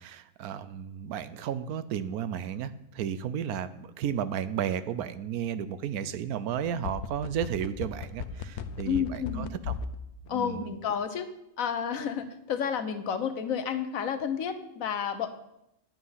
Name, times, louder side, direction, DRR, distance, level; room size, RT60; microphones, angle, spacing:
voice 1, 0.0-9.7 10.3-10.6, right 9 dB, 80° right, 14 dB, 1.1 m, -33 dB
sound 1, 6.5-10.0 10.3-10.4, left 7 dB, 85° left, 1.2 m, -35 dB
voice 2, 8.9-9.5 10.3-11.3 11.6-15.3, left 7 dB, 70° left, 10 dB, 1.3 m, -31 dB
9.1 x 9.0 x 5.6 m, 0.83 s
omnidirectional pair, 1.6 m